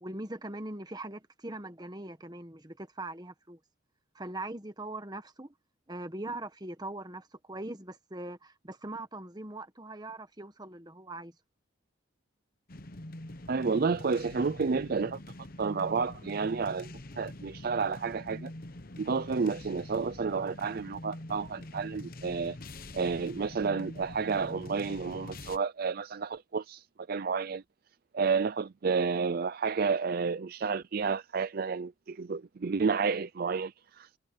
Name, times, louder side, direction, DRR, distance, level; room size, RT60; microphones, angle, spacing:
voice 1, 0.0-3.6 4.1-5.5 5.9-11.3, right 2 dB, 20° right, 1.4 m, -41 dB
sound 1, 12.7-25.6, left 1 dB, 45° left, 1.1 m, -45 dB
voice 2, 13.5-15.2 15.6-18.5 19.0-22.6 22.9-27.6 28.1-34.2, right 5 dB, 50° right, 0.4 m, -31 dB
head